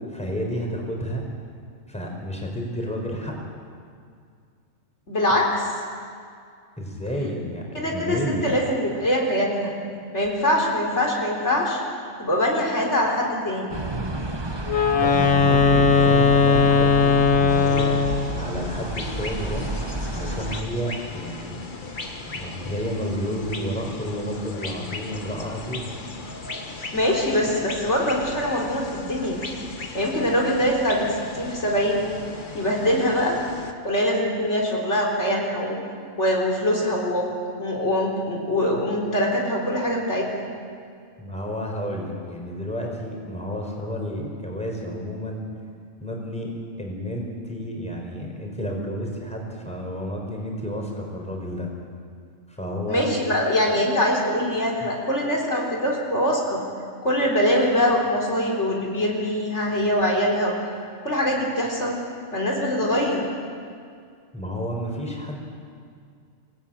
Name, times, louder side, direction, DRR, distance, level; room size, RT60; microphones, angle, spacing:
voice 1, 0.1-1.2 1.9-3.3 6.8-8.5 15.0-17.9 18.3-19.7 20.1-21.6 22.2-25.9 41.2-45.5 46.0-46.5 46.8-51.7 52.5-53.1 64.3-65.4, equal, 5° left, 0 dB, 4.8 m, -31 dB
voice 2, 5.1-5.7 7.7-9.7 10.1-11.8 12.2-13.7 26.9-29.4 29.9-32.1 32.5-33.4 33.8-35.8 36.2-37.3 37.6-40.3 52.9-56.6 57.0-60.6 61.0-62.0 62.3-63.2, left 1 dB, 55° left, -2 dB, 4.1 m, -23 dB
sound 1, 13.7-20.6, right 1 dB, 20° right, 1.6 m, -31 dB
Wind instrument woodwind instrument, 14.7-18.4, left 5 dB, 75° left, 1.7 m, -18 dB
sound 2, 17.5-33.7, left 3 dB, 35° left, 1.7 m, -37 dB
27.0 x 18.5 x 9.1 m, 2.2 s
omnidirectional pair, 1.4 m